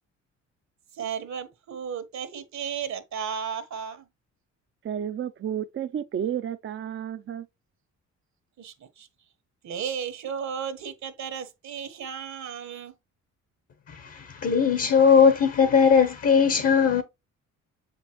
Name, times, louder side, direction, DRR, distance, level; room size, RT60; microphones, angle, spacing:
voice 1, 0.9-4.1 8.6-9.1 9.6-12.9, right 7 dB, 65° right, 1.5 m, -34 dB
voice 2, 4.8-7.5, right 9 dB, 40° right, 0.6 m, -31 dB
voice 3, 13.9-17.0, left 6 dB, 50° left, 1.1 m, -19 dB
7.3 x 5.2 x 3.1 m
cardioid pair, 90°, 30 cm